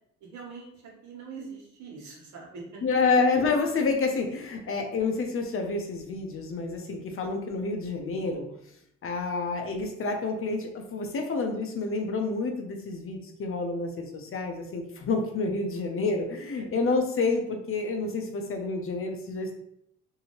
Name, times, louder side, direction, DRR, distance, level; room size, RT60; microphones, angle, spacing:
voice 1, 0.2-2.8 16.6-16.7, right 4 dB, 75° right, -2 dB, 1.1 m, -43 dB
voice 2, 2.8-8.4 9.0-19.5, left 3 dB, 45° left, 3 dB, 0.6 m, -28 dB
2.7 x 2.6 x 2.9 m, 0.74 s
cardioid pair, 90°, 30 cm